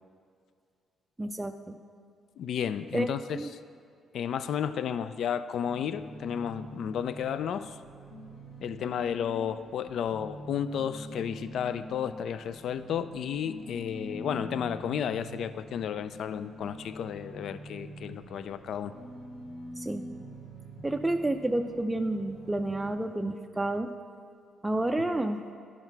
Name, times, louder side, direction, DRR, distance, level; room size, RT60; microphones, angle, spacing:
voice 1, 1.2-1.8 2.9-3.1 3.3-3.5 19.8-20.0 20.8-23.9 24.6-25.4, right 1 dB, 10° right, 4 dB, 0.4 m, -30 dB
voice 2, 2.4-3.6 4.1-7.8 8.6-19.0, left 8 dB, 70° left, 13 dB, 0.3 m, -32 dB
sound 1, 5.6-22.9, right 1 dB, 90° left, 1.4 m, -45 dB
11.0 x 5.7 x 4.5 m, 2.2 s
cardioid pair, 90°, 0 cm